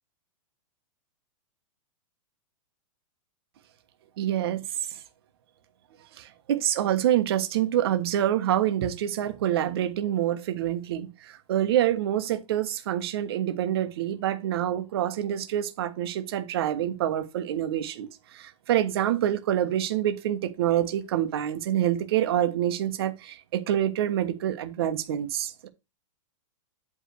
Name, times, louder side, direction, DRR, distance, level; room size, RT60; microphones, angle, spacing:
voice 1, 4.2-4.6 6.2-18.1 18.3-25.7, right 11 dB, 45° right, 1.3 m, -26 dB
8.5 x 3.6 x 6.1 m
supercardioid pair, 175°, 17 cm